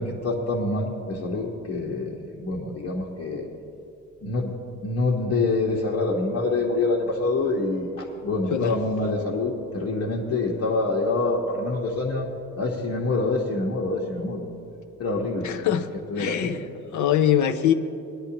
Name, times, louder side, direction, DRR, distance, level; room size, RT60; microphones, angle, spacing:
voice 1, 0.0-3.5 4.2-4.5 4.8-12.3 12.6-14.5 15.0-15.5 16.1-16.6, left 2 dB, 60° left, -4 dB, 1.4 m, -26 dB
voice 2, 15.4-15.9 16.2-16.5 16.9-17.7, left 10 dB, 75° left, 7 dB, 0.8 m, -22 dB
19.5 x 10.0 x 2.9 m, 2.7 s
cardioid pair, 90°, 30 cm